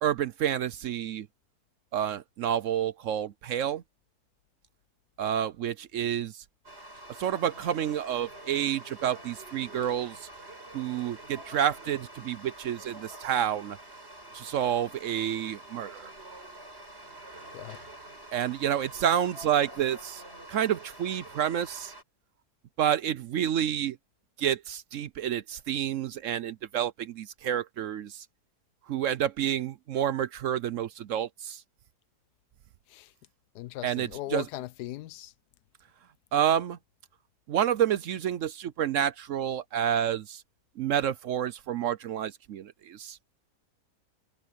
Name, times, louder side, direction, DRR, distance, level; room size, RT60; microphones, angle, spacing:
voice 1, 0.0-1.3 1.9-3.8 5.2-6.4 7.2-10.3 10.7-13.8 14.3-16.1 18.3-20.2 20.5-21.9 22.8-24.0 24.4-28.3 28.9-31.6 33.8-34.4 36.3-36.8 37.5-40.4 40.8-43.2, right 10 dB, 65° right, 0.9 m, -29 dB
sound 1, 6.6-22.0, right 1 dB, 40° right, 5.9 m, -47 dB
voice 2, 33.5-35.3, left 15 dB, 90° left, 1.2 m, -38 dB
omnidirectional pair, 1.7 m